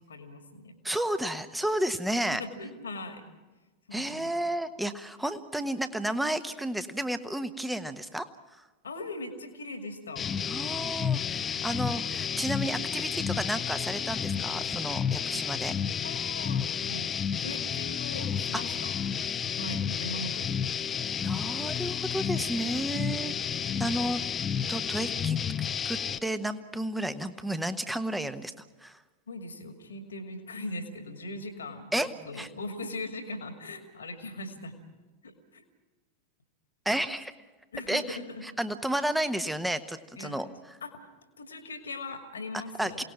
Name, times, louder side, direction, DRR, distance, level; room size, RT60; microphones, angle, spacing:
voice 1, 0.1-0.8 2.4-3.2 3.9-4.3 8.8-10.3 16.0-17.1 17.4-18.9 19.6-20.6 29.3-34.7 35.2-35.6 37.7-38.4 40.2-40.4 40.8-41.1 41.4-43.0, left 2 dB, 70° left, 6 dB, 2.3 m, -40 dB
voice 2, 0.8-2.4 3.9-8.2 10.5-15.7 18.5-18.6 21.2-24.2 24.7-25.4 25.8-28.5 28.8-29.0 31.9-32.1 32.4-32.5 36.8-37.3 37.9-40.5 42.5-43.0, right 1 dB, 5° right, 11 dB, 1.2 m, -32 dB
sound 1, 10.2-26.2, left 7 dB, 20° left, 0.7 m, -31 dB
28.0 x 18.5 x 6.0 m, 1.2 s
figure-of-eight pair, 90°, 0 cm